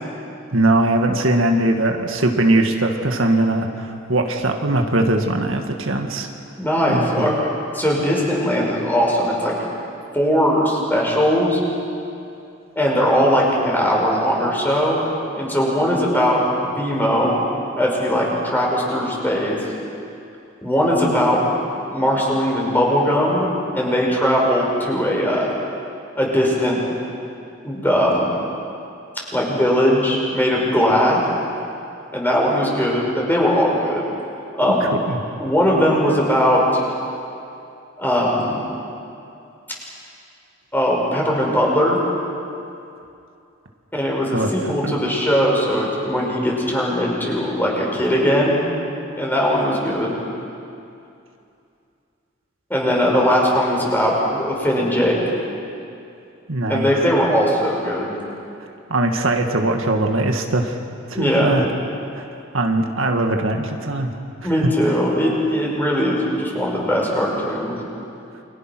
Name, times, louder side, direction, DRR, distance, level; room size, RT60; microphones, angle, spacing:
voice 1, 0.5-6.3 6.9-7.4 35.1-35.2 44.3-45.0 56.5-56.9 58.9-60.8 61.1-61.7 62.1-62.2 62.5-64.1, right 2 dB, 75° right, 3 dB, 1.9 m, -20 dB
voice 2, 6.6-9.5 10.1-11.6 12.8-15.0 15.3-17.4 17.8-19.6 20.6-21.4 21.9-25.5 26.1-26.8 27.6-28.3 29.3-31.2 32.1-34.0 34.6-34.9 35.4-36.8 38.0-38.6 40.7-42.0 43.9-48.6 49.2-50.2 52.7-55.2 56.7-58.1 61.1-61.6 64.4-67.8, equal, 10° left, -3 dB, 6.0 m, -19 dB
29.0 x 25.0 x 6.2 m, 2.6 s
head